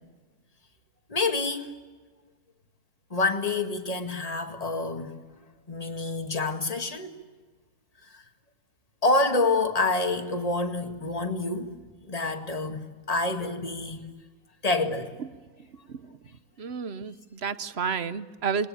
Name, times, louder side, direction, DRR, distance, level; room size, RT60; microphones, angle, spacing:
voice 1, 1.1-1.8 3.1-5.2 5.7-7.2 8.1-8.2 9.0-11.7 12.1-14.1 14.6-15.1, left 3 dB, 25° left, 2.0 m, -27 dB
voice 2, 16.6-18.7, right 6 dB, 45° right, 1.1 m, -31 dB
28.0 x 21.5 x 8.7 m
omnidirectional pair, 1.7 m